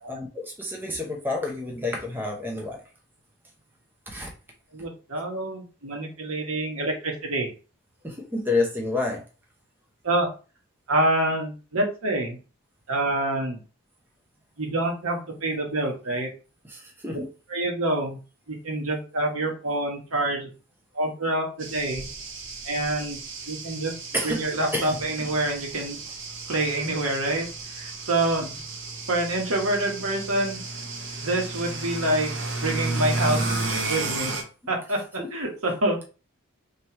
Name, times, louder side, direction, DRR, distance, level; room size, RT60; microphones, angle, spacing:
voice 1, 0.1-2.8 4.1-4.3 8.0-9.2 16.7-17.2 24.1-24.4 24.7-25.3 34.3-34.4 35.2-35.3, left 2 dB, 10° right, 0 dB, 0.7 m, -29 dB
voice 2, 4.7-7.5 10.0-10.3 10.9-12.4 12.9-13.6 14.6-16.3 17.5-18.2 18.5-20.5 20.9-22.1 22.6-23.2 23.5-23.9 24.2-26.0 26.5-28.6 29.1-30.6 31.2-34.4 34.7-36.0, right 1 dB, 75° right, 1 dB, 1.3 m, -27 dB
sound 1, 21.6-34.4, right 2 dB, 55° right, 0.9 m, -33 dB
3.3 x 2.9 x 4.4 m, 0.34 s
head